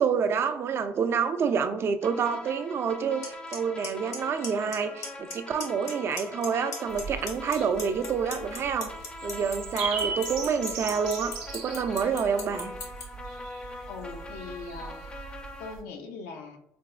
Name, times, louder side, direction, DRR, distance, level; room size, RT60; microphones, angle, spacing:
voice 1, 0.0-8.9 9.2-12.7, right 6 dB, 50° right, 9 dB, 0.3 m, -28 dB
sound 1, 2.0-15.7, left 2 dB, 20° left, 0.4 m, -43 dB
Clock, 3.2-3.3 3.5-3.9 4.1-4.8 5.0-5.3 5.6-6.5 6.7-13.0, left 5 dB, 70° left, 0.8 m, -36 dB
sound 2, 6.9-15.8, right 4 dB, 90° right, 0.6 m, -39 dB
voice 2, 13.8-16.6, left 4 dB, 90° left, 4 dB, 0.4 m, -41 dB
4.0 x 2.0 x 2.3 m, 0.75 s
supercardioid pair, 80°, 6 cm